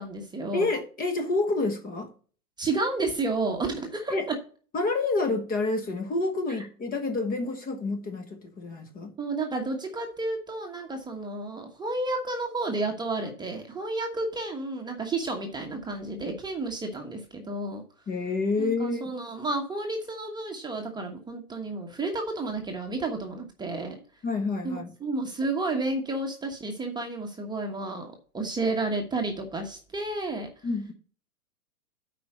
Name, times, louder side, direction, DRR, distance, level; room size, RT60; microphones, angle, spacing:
voice 1, 0.0-0.7 2.6-4.3 9.2-17.8 18.6-24.0 24.6-30.5, right 2 dB, 10° right, 1.2 m, -31 dB
voice 2, 0.5-2.1 4.1-4.2 4.7-9.1 18.1-19.0 24.2-24.9 30.6-30.9, left 3 dB, 20° left, 1.2 m, -28 dB
8.5 x 5.0 x 6.0 m
hypercardioid pair, 120°, 44 cm